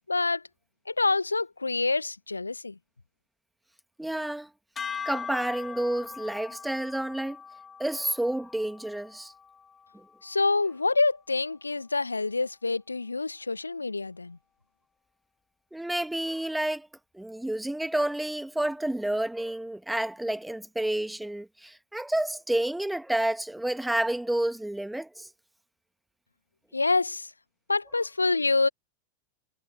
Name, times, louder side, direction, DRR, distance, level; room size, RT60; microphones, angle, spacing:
voice 1, 0.1-0.4 0.9-2.8 10.2-14.4 26.7-27.3 27.7-28.7, left 3 dB, 80° left, 1.3 m, -27 dB
voice 2, 4.0-4.5 5.1-7.4 7.8-9.3 9.9-10.0 15.7-16.9 17.1-25.3, right 1 dB, 5° right, 1.8 m, -30 dB
sound 1, 4.8-11.1, left 6 dB, 20° left, 2.3 m, -41 dB
figure-of-eight pair, 90°, 0 cm